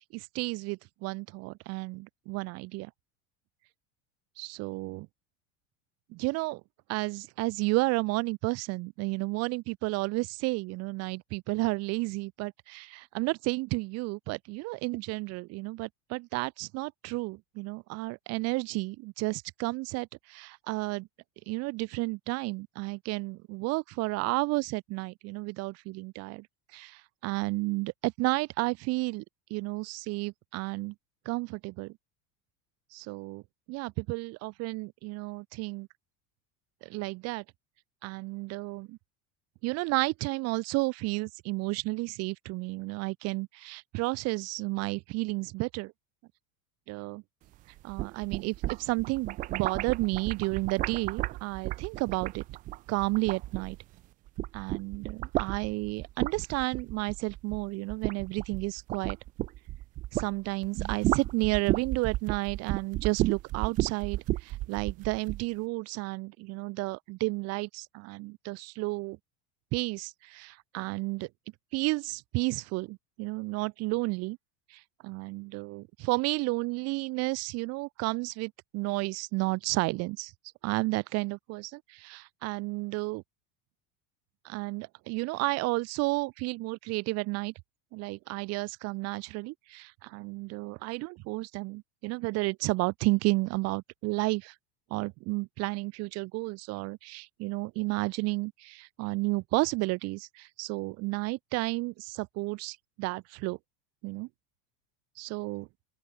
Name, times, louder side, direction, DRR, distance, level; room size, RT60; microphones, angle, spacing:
voice 1, 0.0-2.9 4.4-5.1 6.1-6.6 6.9-21.1 21.5-26.5 26.7-29.2 29.5-30.9 31.2-31.9 32.9-33.4 33.7-35.9 36.8-37.4 38.0-39.0 39.6-45.9 46.9-47.2 47.8-52.4 52.9-53.8 54.5-59.2 60.1-69.2 69.7-71.3 71.7-74.4 74.7-80.3 80.6-83.2 84.4-87.5 87.9-94.5 94.9-103.6 104.0-104.3 105.2-105.7, right 24 dB, 35° right, 1.0 m, -32 dB
sound 1, 47.8-54.0 54.3-60.3 60.6-65.4, right 17 dB, 20° right, 0.4 m, -33 dB
open air
cardioid pair, 175°, 43 cm